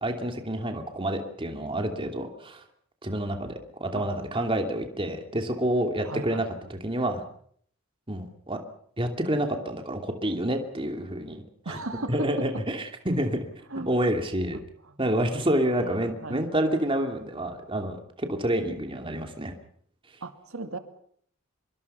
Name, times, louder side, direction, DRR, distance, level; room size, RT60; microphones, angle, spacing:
voice 1, 0.0-2.6 3.0-6.4 6.7-7.2 8.1-8.6 9.0-11.8 12.1-13.5 13.8-14.6 15.0-19.5, right 1 dB, 25° right, 4 dB, 2.8 m, -28 dB
voice 2, 6.0-6.5 11.7-12.3 13.7-13.9 14.9-15.0 15.2-16.5 20.2-20.8, right 2 dB, 80° right, 7 dB, 2.3 m, -37 dB
25.0 x 23.5 x 5.7 m, 0.63 s
head